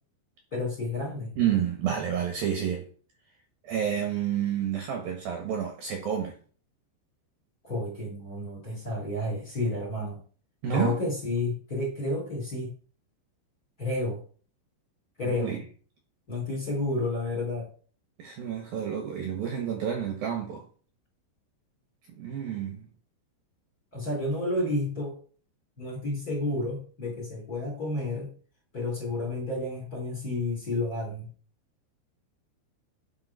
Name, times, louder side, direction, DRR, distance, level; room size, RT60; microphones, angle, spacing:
voice 1, 0.5-1.3 7.6-10.2 10.7-12.7 13.8-14.2 15.2-15.6 16.3-17.7 23.9-25.2 25.8-28.3 28.7-31.3, left 2 dB, 20° left, 3.5 m, -31 dB
voice 2, 1.4-2.9 3.6-6.4 10.6-10.9 15.3-15.6 18.2-20.6 22.1-22.8, right 9 dB, 65° right, 2.7 m, -29 dB
10.5 x 5.8 x 5.6 m
omnidirectional pair, 5.5 m